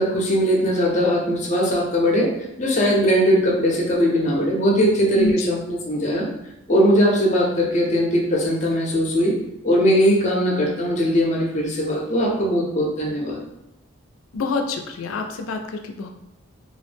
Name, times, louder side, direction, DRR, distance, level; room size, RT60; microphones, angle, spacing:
voice 1, 0.0-2.3 2.6-6.3 6.7-9.3 9.6-13.4, equal, 35° left, -1 dB, 0.5 m, -20 dB
voice 2, 5.1-5.7 14.3-16.1, left 3 dB, 90° left, 5 dB, 0.4 m, -27 dB
2.3 x 2.0 x 3.2 m, 0.86 s
head